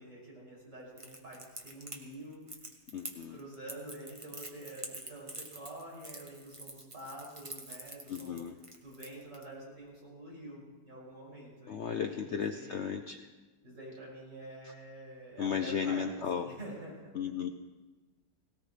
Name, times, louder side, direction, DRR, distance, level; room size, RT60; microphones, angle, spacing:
voice 1, 0.0-2.4 3.3-8.4 8.8-12.9 13.6-17.3, right 1 dB, 70° right, -6 dB, 7.0 m, -47 dB
Crackle, 1.0-9.4, right 2 dB, 20° right, 1.0 m, -46 dB
voice 2, 2.9-3.4 8.1-8.6 11.7-13.2 15.4-16.5 17.1-17.5, left 7 dB, 85° left, 5 dB, 0.6 m, -34 dB
19.0 x 17.5 x 3.3 m, 1.2 s
omnidirectional pair, 2.0 m